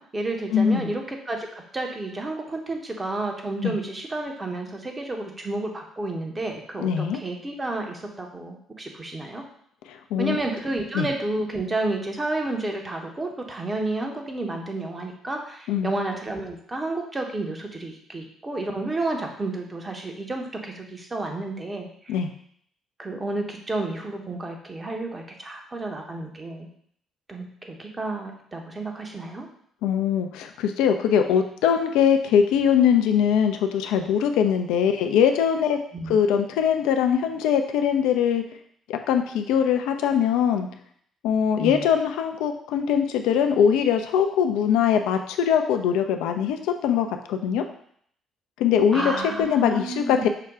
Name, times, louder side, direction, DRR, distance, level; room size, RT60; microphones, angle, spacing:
voice 1, 0.0-9.4 10.2-22.2 23.0-26.7 27.3-29.5 35.9-36.2 41.6-41.8 48.9-50.3, right 2 dB, 25° right, 2 dB, 1.0 m, -31 dB
voice 2, 0.5-0.9 3.6-3.8 6.8-7.2 9.9-10.4 10.9-11.1 15.7-15.9 22.1-22.3 29.8-35.8 36.1-38.4 38.9-40.7 41.2-47.6 48.6-49.1 49.4-50.3, left 8 dB, 70° left, 6 dB, 0.4 m, -22 dB
5.6 x 2.3 x 3.6 m, 0.65 s
hypercardioid pair, 50°, 0 cm